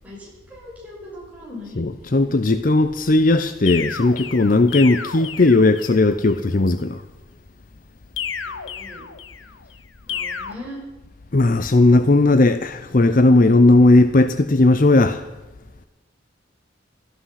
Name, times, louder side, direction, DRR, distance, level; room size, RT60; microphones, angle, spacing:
voice 1, 0.0-2.2 8.2-9.0 10.1-10.8, left 1 dB, 10° right, 6.1 m, -40 dB
voice 2, 1.8-7.0 11.3-15.2, left 2 dB, 45° left, 0.7 m, -16 dB
sound 1, 3.7-6.1 8.2-9.5 10.1-10.5, left 7 dB, 85° left, 1.1 m, -31 dB
17.5 x 14.0 x 5.8 m
head